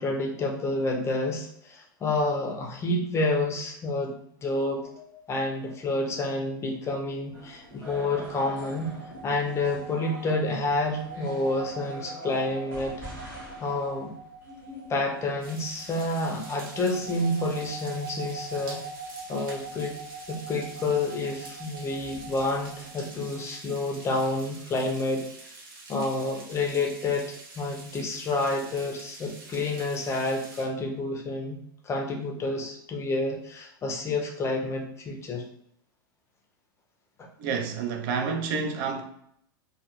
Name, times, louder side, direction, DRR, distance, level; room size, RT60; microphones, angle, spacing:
voice 1, 0.0-4.1 4.4-4.9 5.3-8.9 9.2-13.0 13.6-14.1 14.9-18.8 19.3-20.0 20.3-25.3 25.9-31.6 31.8-35.4 37.2-37.3, left 2 dB, 25° left, 0.5 m, -29 dB
sound 1, 4.8-6.0 8.0-24.0, right 3 dB, 90° left, 0.7 m, -43 dB
sound 2, 7.3-23.4, equal, 15° right, 1.1 m, -47 dB
sound 3, 15.4-30.6, right 2 dB, 75° right, 1.0 m, -47 dB
voice 2, 37.4-39.0, right 5 dB, 55° right, 0.5 m, -29 dB
2.3 x 2.2 x 2.9 m
hypercardioid pair, 110°, 12 cm